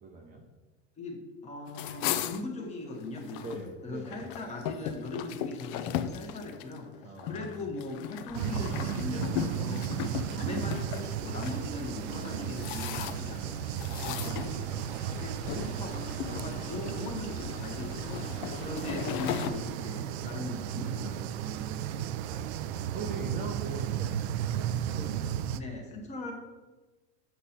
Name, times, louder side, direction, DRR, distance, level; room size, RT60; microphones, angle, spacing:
voice 1, 0.0-0.5 3.4-4.3 7.0-7.6 10.0-10.6 13.9-14.3 18.4-18.8 21.4-22.5 22.9-24.5 24.8-25.3, right 3 dB, 20° right, 1 dB, 0.6 m, -42 dB
voice 2, 1.0-3.5 3.8-6.9 7.2-9.9 10.3-14.8 15.1-21.3 25.5-26.3, left 2 dB, 20° left, 2 dB, 1.1 m, -40 dB
sound 1, 1.7-3.6 4.0-11.6 12.2-13.4 13.8-15.0 15.5-15.7 16.1-16.9 17.5-19.5, left 10 dB, 50° left, 0.5 m, -36 dB
sound 2, 8.3-19.7, left 3 dB, 70° left, 1.3 m, -47 dB
sound 3, 8.3-25.6, right 10 dB, 60° right, 0.5 m, -34 dB
8.2 x 5.5 x 4.2 m, 1.2 s
supercardioid pair, 155°, 36 cm